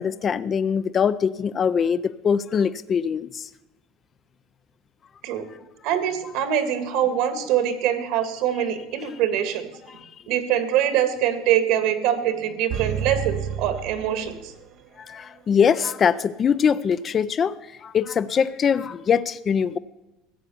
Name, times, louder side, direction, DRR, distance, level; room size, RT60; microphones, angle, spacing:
voice 1, 0.0-3.5 9.9-10.0 15.0-17.6 17.8-19.8, left 7 dB, 30° left, 15 dB, 0.4 m, -22 dB
voice 2, 5.8-9.7 10.3-14.4, right 10 dB, 65° right, 10 dB, 1.8 m, -23 dB
sound 1, 12.7-14.9 15.2-15.3, right 8 dB, 45° right, 0.6 m, -31 dB
15.5 x 8.1 x 7.0 m, 1.0 s
supercardioid pair, 125°, 0 cm